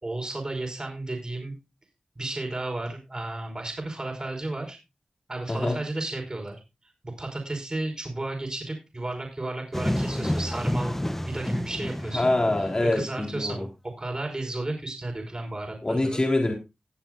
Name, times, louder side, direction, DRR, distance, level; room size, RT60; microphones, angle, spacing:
voice 1, 0.0-1.5 2.1-4.8 5.3-6.6 6.8-12.3 12.9-16.2, right 2 dB, 35° right, 2 dB, 5.1 m, -33 dB
sound 1, 9.7-13.2, left 1 dB, 10° left, 0.9 m, -29 dB
voice 2, 12.1-13.6 15.8-16.5, left 2 dB, 35° left, 1 dB, 3.7 m, -24 dB
20.5 x 7.4 x 2.5 m, 0.26 s
cardioid pair, 45°, 2 cm